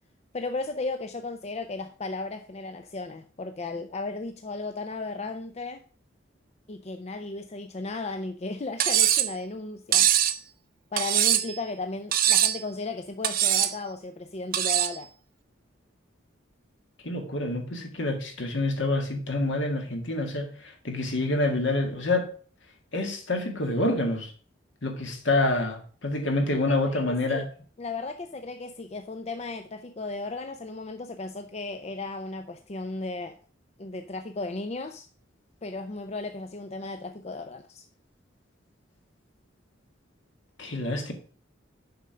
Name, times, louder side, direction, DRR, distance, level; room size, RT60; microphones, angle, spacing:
voice 1, 0.3-5.8 6.7-10.1 10.9-15.1 26.7-27.4 27.8-33.4 33.8-35.1 35.6-37.8, left 3 dB, 35° left, 0.5 m, -35 dB
Cutlery silverware, 8.8-9.3 9.9-10.4 11.0-11.6 12.1-12.6 13.2-13.7 14.5-15.0, right 11 dB, 50° right, 0.7 m, -22 dB
voice 2, 17.0-22.3 22.9-24.3 24.8-27.4 40.6-41.1, left 2 dB, 70° left, 1.8 m, -27 dB
6.8 x 5.1 x 5.6 m
head